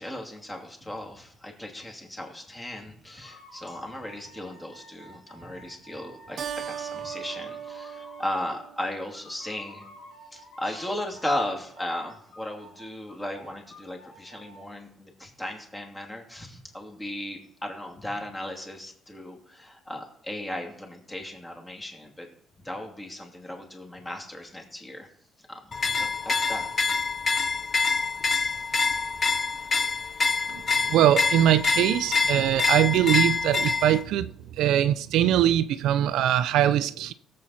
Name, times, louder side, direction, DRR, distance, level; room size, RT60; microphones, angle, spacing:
voice 1, 0.0-9.8 10.3-22.3 22.6-25.1 25.5-26.7 30.3-30.4 30.7-30.8, left 1 dB, 10° left, 2.7 m, -36 dB
sound 1, 3.0-8.7 9.1-11.4 11.7-14.6, left 1 dB, 65° left, 5.3 m, -50 dB
Keyboard (musical), 6.4-9.3, right 8 dB, 45° right, 0.8 m, -38 dB
sound 2, 25.7-34.0, left 4 dB, 30° left, 0.9 m, -26 dB
voice 2, 30.5-37.1, right 11 dB, 80° right, 0.5 m, -22 dB
18.0 x 7.6 x 4.3 m
cardioid pair, 140°, 0 cm